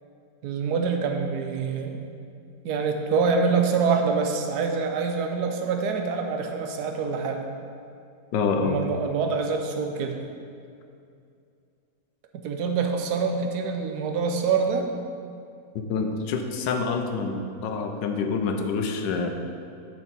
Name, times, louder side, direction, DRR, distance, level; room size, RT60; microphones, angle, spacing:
voice 1, 0.4-2.0 2.6-7.5 8.6-10.2 12.3-14.8, right 5 dB, 70° right, 4 dB, 1.2 m, -25 dB
voice 2, 8.3-8.8 15.7-19.3, left 4 dB, 85° left, 5 dB, 1.3 m, -27 dB
11.0 x 4.4 x 4.1 m, 2.4 s
omnidirectional pair, 1.9 m